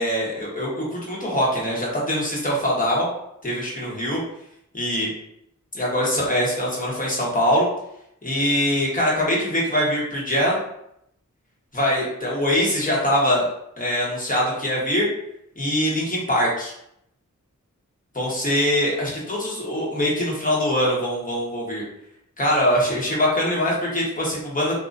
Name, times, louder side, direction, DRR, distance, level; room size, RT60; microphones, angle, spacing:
voice 1, 0.0-3.1 3.4-4.2 4.7-5.1 5.7-7.7 8.2-10.6 11.7-13.5 13.8-15.1 15.6-16.7 18.1-21.8 22.4-24.7, equal, 25° left, -5 dB, 1.2 m, -23 dB
2.9 x 2.5 x 2.6 m, 0.76 s
wide cardioid pair, 50°, 31 cm